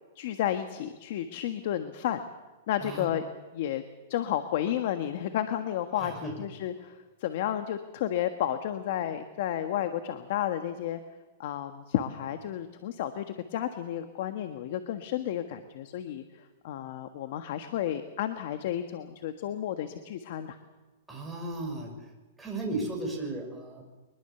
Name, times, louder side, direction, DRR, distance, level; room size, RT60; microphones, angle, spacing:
voice 1, 0.1-2.2 2.7-3.2 3.5-3.8 4.1-11.0 11.4-20.6, left 11 dB, 55° left, 8 dB, 1.5 m, -32 dB
voice 2, 2.8-3.1 6.0-6.3 21.1-21.9 22.4-23.8, right 2 dB, 5° right, -1 dB, 6.1 m, -35 dB
24.0 x 21.5 x 7.0 m, 1.2 s
hypercardioid pair, 150°, 0 cm